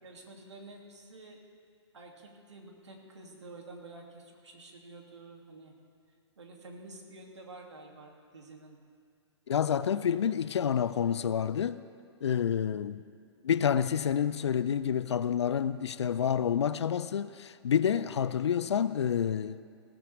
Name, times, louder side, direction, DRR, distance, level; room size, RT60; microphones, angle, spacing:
voice 1, 0.0-1.4 1.9-5.7 6.4-8.8 12.7-13.0, right 2 dB, 80° right, 2.7 m, -50 dB
voice 2, 9.5-11.8 12.2-13.0 13.4-19.6, left 8 dB, 75° left, 0.6 m, -28 dB
20.0 x 14.5 x 3.5 m
hypercardioid pair, 120°, 15 cm